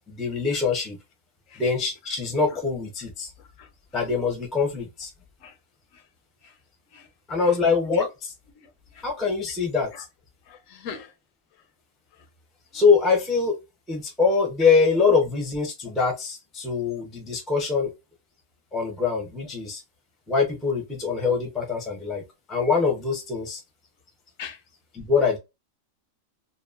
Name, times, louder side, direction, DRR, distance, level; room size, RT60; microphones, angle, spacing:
voice 1, 0.1-1.0 1.6-3.3 3.9-5.1 7.3-8.1 9.0-10.1 12.7-13.6 13.9-17.9 18.7-19.8 20.3-22.2 22.5-23.6 24.9-25.4, left 5 dB, ahead, 0.4 m, -23 dB
voice 2, 10.5-11.1 15.1-15.2 24.4-24.6, left 7 dB, 80° left, 1.0 m, -36 dB
2.9 x 2.0 x 2.4 m
omnidirectional pair, 1.4 m